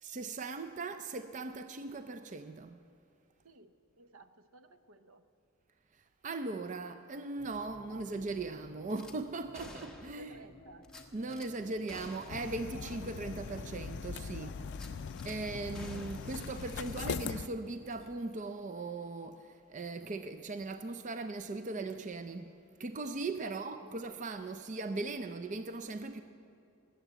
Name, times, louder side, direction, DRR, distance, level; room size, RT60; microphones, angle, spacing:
voice 1, 0.0-2.8 6.2-10.4 11.1-14.5 15.2-26.2, right 3 dB, 35° right, 0.4 m, -39 dB
voice 2, 3.4-5.2 7.9-8.2 10.2-10.9 14.1-15.1 17.1-17.2 17.6-17.7 23.4-24.0, right 2 dB, 75° right, 0.8 m, -56 dB
sound 1, 7.4-18.2, left 1 dB, 20° left, 0.7 m, -57 dB
Gunshot gunfire / Glass, 8.9-9.2 9.5-10.3 10.8-11.5 11.9-12.5 12.9-13.0 13.4-13.5 14.7-15.4 15.7-17.5 17.9-18.1, left 1 dB, 5° left, 1.1 m, -52 dB
sound 2, 12.3-17.5, left 6 dB, 50° left, 0.3 m, -41 dB
20.0 x 8.0 x 8.0 m
head